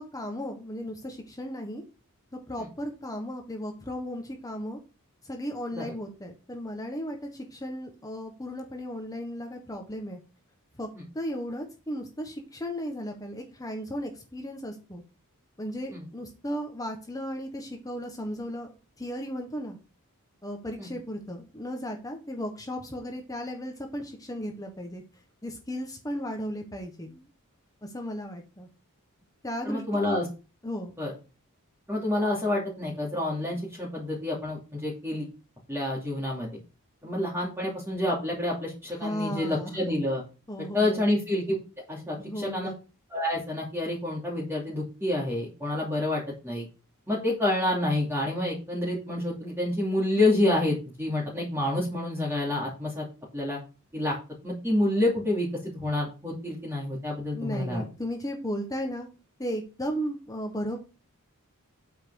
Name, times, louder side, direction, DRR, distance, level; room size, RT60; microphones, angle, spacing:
voice 1, 0.0-1.8 2.3-4.8 5.2-10.2 10.8-10.9 11.1-15.0 15.6-19.8 20.4-25.0 25.4-27.3 27.8-28.7 29.4-30.2 30.6-30.9 39.0-39.9 40.5-41.1 42.2-42.7 57.4-59.1 59.4-60.8, equal, 15° left, 3 dB, 1.4 m, -35 dB
voice 2, 29.6-30.2 31.0-31.1 31.9-35.3 35.7-36.6 37.0-40.2 40.7-41.6 41.9-42.7 43.1-46.7 47.1-53.0 53.3-53.6 53.9-54.2 54.4-57.8, left 1 dB, 10° right, -5 dB, 2.8 m, -28 dB
8.9 x 5.8 x 4.8 m, 0.31 s
head